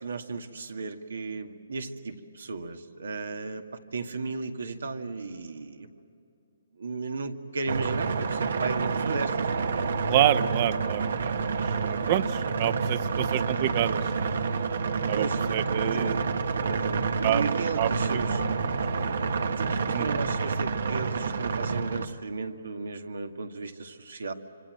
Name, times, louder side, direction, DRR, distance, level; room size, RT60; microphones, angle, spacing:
voice 1, 0.0-3.6 3.9-5.9 6.8-9.5 15.1-16.2 16.6-18.4 19.5-24.3, right 4 dB, 85° right, 6 dB, 2.1 m, -34 dB
sound 1, 7.7-22.1, right 4 dB, 70° right, 1.4 m, -28 dB
voice 2, 10.1-14.3 15.1-16.2 17.2-17.4 17.8-18.4 19.9-20.2, right 12 dB, 35° right, 14 dB, 0.8 m, -28 dB
26.0 x 26.0 x 7.7 m, 2.6 s
hypercardioid pair, 160°, 0 cm